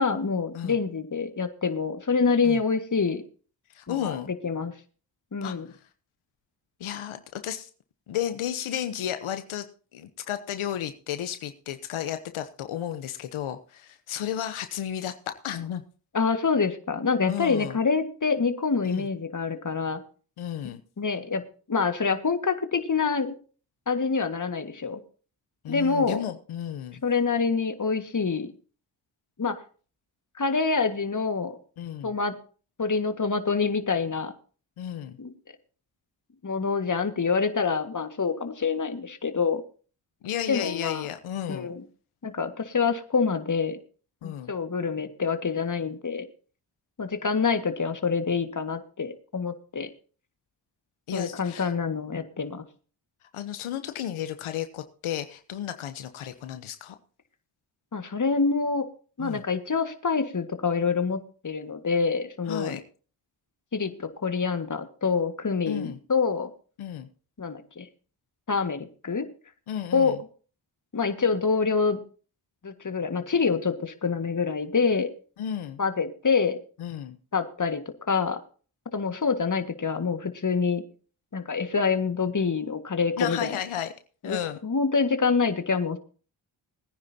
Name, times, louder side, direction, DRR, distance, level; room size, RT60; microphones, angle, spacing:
voice 1, 0.0-3.2 3.9-4.1 4.4-4.7 5.3-5.7 16.1-20.0 21.0-21.4 21.7-23.3 23.9-25.0 25.7-26.2 27.0-28.5 29.4-29.6 30.4-31.6 32.0-32.3 32.8-34.3 35.2-35.3 36.4-39.6 40.5-41.1 41.5-41.8 42.2-43.8 44.2-46.3 47.0-49.9 51.1-52.6 57.9-58.9 59.2-62.8 63.7-66.5 67.4-67.9 68.5-69.3 69.9-70.1 70.9-72.0 72.6-75.1 75.8-76.6 77.3-77.8 78.1-78.4 78.9-80.8 81.3-83.6 84.2-84.4 84.6-86.0, left 5 dB, 40° left, 9 dB, 1.9 m, -26 dB
voice 2, 3.7-4.3 5.4-5.8 6.8-7.7 8.1-9.7 9.9-15.8 17.3-17.8 18.8-19.1 20.4-20.8 25.6-27.0 31.8-32.1 34.8-35.2 40.2-41.7 44.2-44.5 51.1-51.7 53.3-57.0 59.2-59.4 62.5-62.8 65.7-66.0 66.8-67.1 69.7-70.2 75.4-75.8 76.8-77.2 83.2-83.9 84.2-84.6, left 10 dB, 85° left, 10 dB, 1.0 m, -33 dB
21.0 x 9.8 x 2.8 m, 0.38 s
cardioid pair, 50°, 48 cm